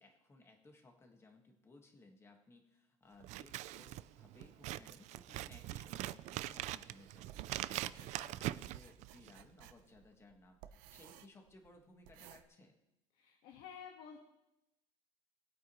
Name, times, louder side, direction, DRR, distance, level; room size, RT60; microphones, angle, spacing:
voice 1, 0.0-12.8, left 2 dB, 20° left, 3 dB, 1.5 m, -61 dB
Scissors, 3.2-9.5, right 15 dB, 55° right, 0.4 m, -43 dB
sound 1, 6.3-12.4, right 11 dB, 85° right, 0.7 m, -59 dB
voice 2, 13.1-14.2, left 7 dB, 75° left, 1 dB, 1.5 m, -51 dB
20.5 x 8.5 x 3.1 m, 0.90 s
cardioid pair, 150°, 14 cm